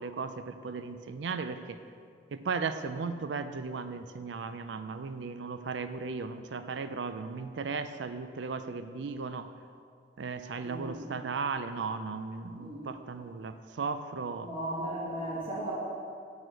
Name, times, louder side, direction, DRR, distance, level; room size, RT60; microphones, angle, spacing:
voice 1, 0.0-1.8 2.3-9.5 10.2-14.5, right 4 dB, 80° right, 10 dB, 0.5 m, -36 dB
voice 2, 10.6-11.1 12.6-12.9 14.4-15.7, right 1 dB, 30° right, -9 dB, 1.5 m, -36 dB
7.1 x 6.2 x 7.5 m, 2.2 s
head